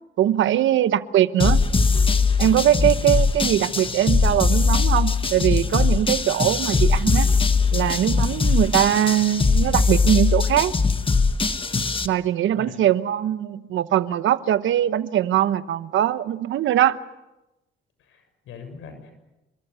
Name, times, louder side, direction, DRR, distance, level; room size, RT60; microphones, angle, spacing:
voice 1, 0.2-1.6 2.4-7.3 7.7-10.7 12.0-17.0, right 11 dB, 75° right, 1.1 m, -21 dB
sound 1, 1.4-12.1, left 4 dB, 25° left, 1.5 m, -21 dB
voice 2, 18.0-19.1, left 5 dB, 85° left, 7.1 m, -41 dB
29.0 x 24.0 x 6.9 m
cardioid pair, 90°, 20 cm